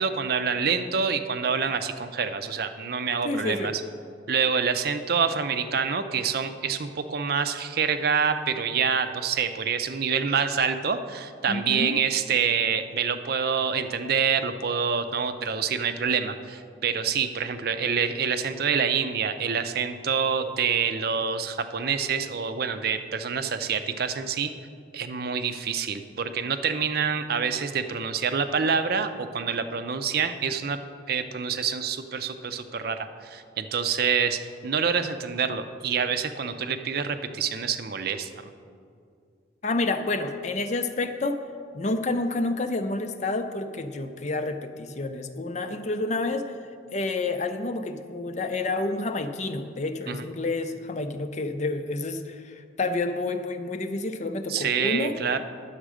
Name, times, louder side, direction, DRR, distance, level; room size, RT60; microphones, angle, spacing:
voice 1, 0.0-3.7 4.3-24.5 24.9-30.8 31.1-38.3 50.1-50.2 54.5-55.4, right 6 dB, 55° right, 9 dB, 0.5 m, -27 dB
voice 2, 3.2-3.7 11.5-11.9 39.6-41.4 41.7-46.5 46.9-55.1, left 2 dB, 40° left, 9 dB, 0.5 m, -29 dB
10.0 x 7.3 x 4.9 m, 2.3 s
head